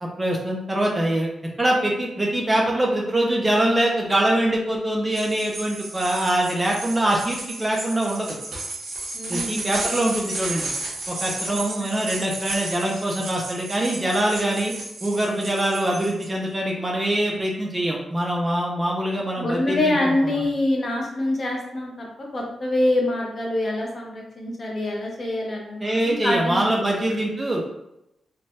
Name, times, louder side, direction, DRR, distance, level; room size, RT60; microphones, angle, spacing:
voice 1, 0.0-1.3 1.6-8.4 9.3-10.7 11.1-14.7 15.0-20.4 25.8-27.6, right 1 dB, 20° right, -1 dB, 0.4 m, -24 dB
sound 1, 5.1-16.3, right 2 dB, 70° right, 0.9 m, -33 dB
voice 2, 9.1-9.6 11.5-11.9 19.4-22.1 22.3-26.6 26.8-27.3, left 1 dB, 40° left, -1 dB, 0.7 m, -25 dB
3.1 x 2.2 x 2.7 m, 0.86 s
wide cardioid pair, 145°, 0 cm